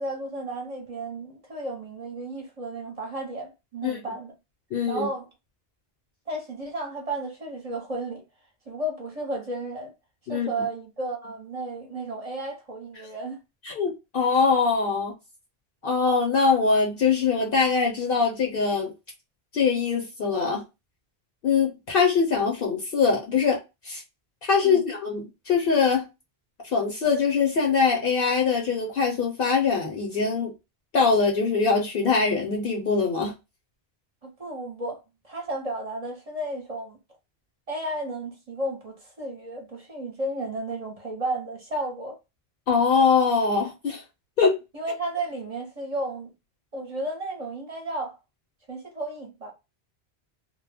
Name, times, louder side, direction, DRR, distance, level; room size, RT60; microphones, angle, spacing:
voice 1, 0.0-4.3 4.9-5.3 6.3-8.2 8.7-9.9 10.3-13.4 24.6-24.8 34.2-35.0 35.2-37.0 37.7-42.2 44.7-46.3 46.7-48.2 48.7-49.5, right 1 dB, 40° right, 0.7 m, -33 dB
voice 2, 4.7-5.1 10.3-10.5 13.6-15.1 15.8-18.9 19.5-20.6 21.4-23.6 23.8-24.0 24.4-26.1 26.6-30.5 30.9-33.3 42.7-44.0 44.4-44.6, left 5 dB, 65° left, 0.8 m, -23 dB
2.2 x 2.1 x 3.3 m
omnidirectional pair, 1.1 m